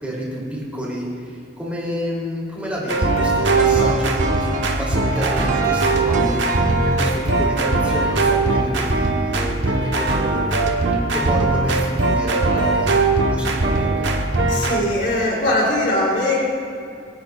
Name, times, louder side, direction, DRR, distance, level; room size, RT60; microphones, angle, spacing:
voice 1, 0.0-6.4 6.8-12.9 13.3-14.2, equal, 10° right, -6 dB, 3.3 m, -29 dB
sound 1, 2.9-14.8, right 3 dB, 80° right, 1.2 m, -20 dB
sound 2, 3.4-9.5 9.9-10.0, right 4 dB, 45° right, 0.8 m, -32 dB
voice 2, 14.5-16.4, left 1 dB, 65° left, -5 dB, 3.5 m, -20 dB
25.0 x 9.7 x 2.5 m, 2.5 s
head